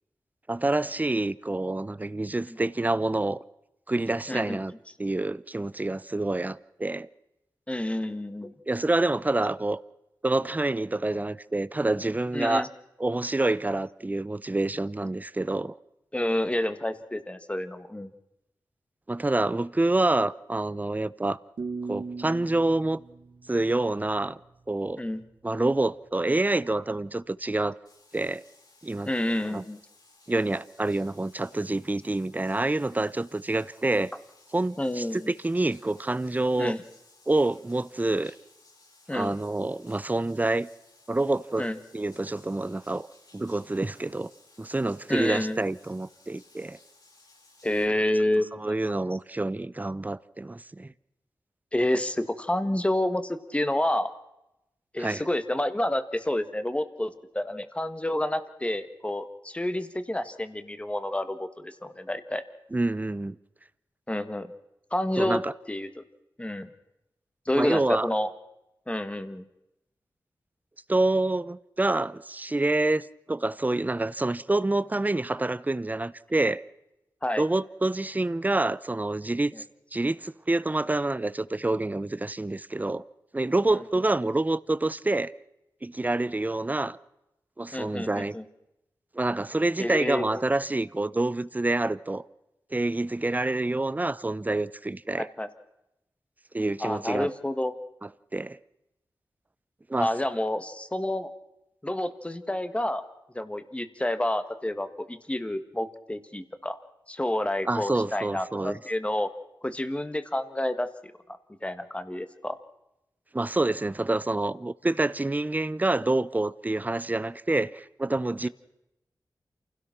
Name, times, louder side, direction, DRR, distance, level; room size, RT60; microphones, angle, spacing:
voice 1, 0.5-3.4 3.9-4.7 5.0-7.1 8.7-9.8 10.2-12.7 13.0-15.7 19.1-21.4 21.9-23.0 23.5-24.4 24.7-25.0 25.4-27.8 28.1-28.4 28.8-29.1 29.5-29.6 30.3-34.1 34.5-36.8 37.3-38.3 39.1-40.7 41.1-41.7 41.9-43.1 43.3-44.3 44.6-46.8 48.6-50.9 55.0-55.2 62.7-63.4 65.2-65.5 67.5-68.1 70.9-76.6 77.4-79.5 79.9-83.0 83.3-85.3 85.8-87.0 87.6-88.4 89.1-92.2 92.7-95.3 96.5-97.3 98.0-98.6 99.9-100.1 107.7-108.8 113.3-118.5, right 2 dB, 20° right, 0.7 m, -27 dB
voice 2, 4.3-4.6 7.7-8.5 12.3-12.7 16.1-18.1 25.0-25.2 29.0-29.8 34.8-35.3 36.6-36.8 39.1-39.3 41.6-41.8 45.1-45.6 47.6-49.0 51.7-54.1 54.9-62.4 64.1-64.5 64.9-65.4 65.7-66.0 66.4-66.7 67.4-68.3 68.9-69.4 77.2-77.4 79.5-79.6 87.7-88.4 89.8-90.3 95.2-95.5 96.8-97.7 100.0-101.3 101.8-103.0 103.3-106.8 107.1-109.3 109.6-111.1 111.6-112.6 118.4-118.5, left 1 dB, 15° left, 1.6 m, -29 dB
sound 1, 21.6-24.5, right 4 dB, 80° right, 1.9 m, -39 dB
Bathtub (filling or washing), 27.8-47.8, left 2 dB, 65° left, 7.9 m, -58 dB
28.0 x 16.5 x 6.0 m
wide cardioid pair, 70°, 8 cm